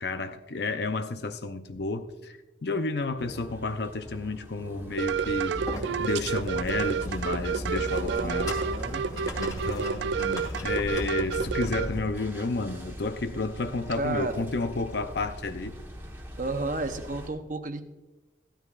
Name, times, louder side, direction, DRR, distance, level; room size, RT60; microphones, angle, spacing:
voice 1, 0.0-5.6 6.0-8.6 9.4-15.8, left 3 dB, 60° left, 0.6 m, -31 dB
sound 1, 3.2-17.3, equal, 10° right, 1.2 m, -45 dB
sound 2, 5.0-11.9, right 6 dB, 75° right, 0.4 m, -30 dB
sound 3, 5.5-12.0, equal, 20° left, 2.0 m, -36 dB
voice 2, 8.0-9.0 14.0-14.5 16.4-17.8, right 3 dB, 45° right, 0.8 m, -32 dB
15.0 x 12.5 x 2.5 m
head